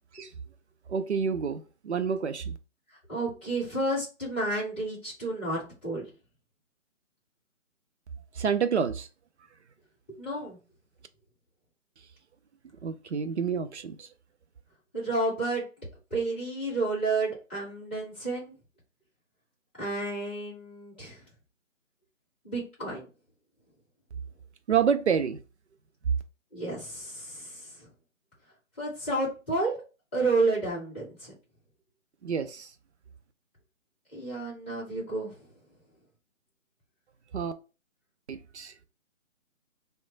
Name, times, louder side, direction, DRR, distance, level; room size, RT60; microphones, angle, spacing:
voice 1, 0.9-2.6 8.4-9.1 12.8-14.1 24.7-25.4 32.2-32.7 37.3-37.5 38.3-38.7, right 7 dB, 55° right, 0.5 m, -28 dB
voice 2, 3.1-6.1 10.2-10.6 14.9-15.6 16.1-18.5 19.8-21.2 22.4-23.0 26.5-27.9 28.8-29.8 30.1-31.3 34.1-35.4, right 2 dB, 10° left, 0.7 m, -31 dB
3.0 x 2.2 x 3.7 m
figure-of-eight pair, 150°, 40 cm